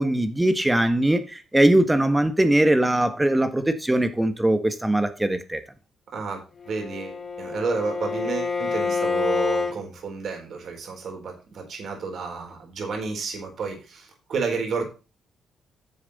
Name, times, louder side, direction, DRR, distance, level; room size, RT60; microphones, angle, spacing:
voice 1, 0.0-5.6, right 1 dB, 10° right, 1.4 m, -21 dB
voice 2, 6.1-14.8, right 5 dB, 60° right, 4.1 m, -31 dB
Bowed string instrument, 6.6-9.8, left 4 dB, 35° left, 1.6 m, -27 dB
10.0 x 7.2 x 4.2 m
cardioid pair, 90°, 0 cm